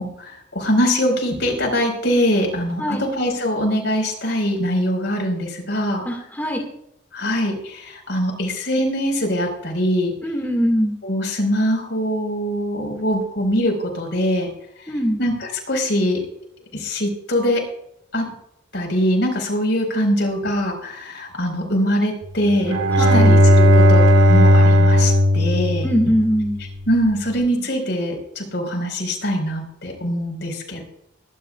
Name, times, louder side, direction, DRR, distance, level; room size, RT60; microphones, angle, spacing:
voice 1, 0.0-6.0 7.1-10.1 11.0-14.5 15.2-16.2 16.7-17.6 18.1-18.3 18.7-25.9 26.9-30.8, equal, 65° left, 1 dB, 4.7 m, -22 dB
voice 2, 6.1-6.7 10.2-11.0 14.9-15.2 22.9-23.4 25.8-26.6, equal, 10° left, 0 dB, 1.9 m, -21 dB
Bowed string instrument, 22.5-26.6, equal, 85° right, 2.0 m, -14 dB
22.0 x 11.5 x 2.4 m, 0.73 s
head